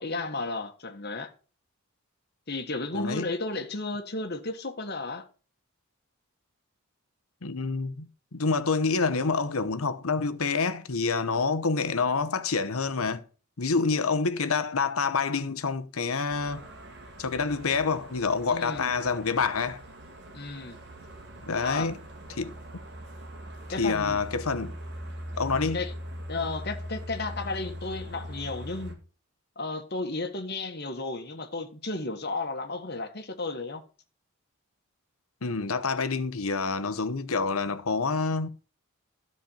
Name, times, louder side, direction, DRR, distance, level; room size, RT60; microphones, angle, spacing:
voice 1, 0.0-1.3 2.5-5.3 18.5-18.9 20.3-20.8 21.6-21.9 23.7-24.2 25.5-25.9 26.3-29.0 29.5-33.8, left 3 dB, 50° left, 1.5 m, -33 dB
voice 2, 2.9-3.3 7.4-13.2 13.6-16.7 17.2-19.8 21.5-21.9 22.3-22.5 23.8-24.7 25.4-25.8 35.4-38.5, left 4 dB, 80° left, 0.9 m, -27 dB
sound 1, 16.3-28.9, equal, 50° right, 2.3 m, -41 dB
13.0 x 4.5 x 7.2 m
head